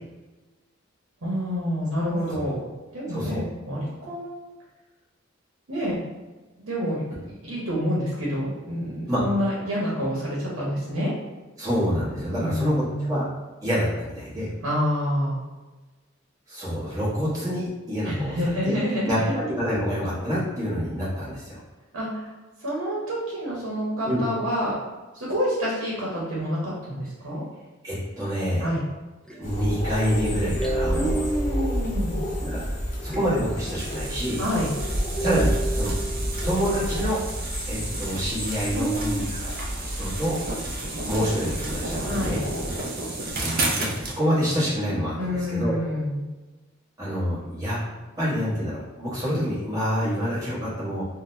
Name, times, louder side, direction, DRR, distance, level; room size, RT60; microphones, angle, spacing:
voice 1, 1.2-2.7 2.9-4.5 5.7-6.0 6.6-11.1 12.4-13.3 14.6-15.4 18.0-19.3 21.9-22.3 22.6-24.7 25.1-27.4 28.6-28.9 30.9-32.2 34.4-34.7 38.7-39.3 42.0-42.4 45.2-46.2, equal, 75° right, -6 dB, 0.9 m, -28 dB
voice 2, 3.1-3.4 9.1-9.2 11.6-13.3 13.6-14.5 16.5-18.4 18.6-18.7 19.1-21.6 24.0-24.2 27.8-28.7 29.4-31.2 32.4-32.6 33.0-34.4 35.2-35.9 36.4-37.2 37.7-39.6 39.8-40.4 41.0-42.4 43.3-45.8 47.0-47.8 48.2-51.0, equal, 20° right, -9 dB, 1.2 m, -27 dB
sound 1, 29.3-32.6 33.1-34.8 35.1-37.5, right 2 dB, 5° left, 0.4 m, -35 dB
sound 2, 29.4-42.7, equal, 40° left, 0.6 m, -30 dB
sound 3, 33.8-44.2, right 2 dB, 45° right, 0.5 m, -32 dB
3.7 x 2.1 x 2.6 m, 1.2 s
head